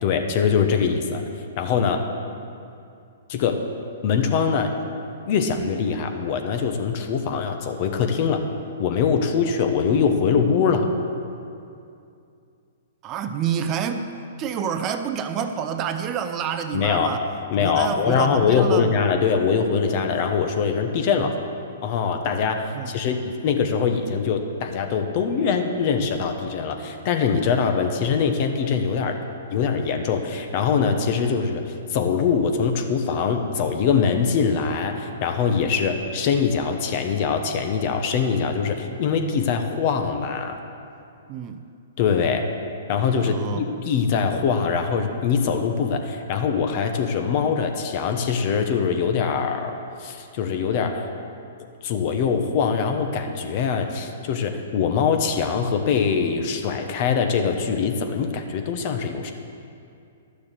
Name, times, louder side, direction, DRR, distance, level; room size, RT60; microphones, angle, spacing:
voice 1, 0.0-1.2 1.6-2.1 3.3-3.6 4.0-4.7 5.3-8.4 8.8-10.9 16.7-17.1 17.5-21.4 21.8-29.2 29.5-40.6 42.0-42.5 42.9-51.1 51.8-59.3, left 6 dB, 45° left, 5 dB, 1.1 m, -23 dB
voice 2, 13.0-17.2 17.6-18.9 21.2-21.3 22.7-22.9 35.7-35.9 41.3-41.6 43.2-43.8, right 7 dB, 30° right, 8 dB, 0.6 m, -28 dB
11.5 x 6.9 x 6.8 m, 2.5 s
hypercardioid pair, 125°, 0 cm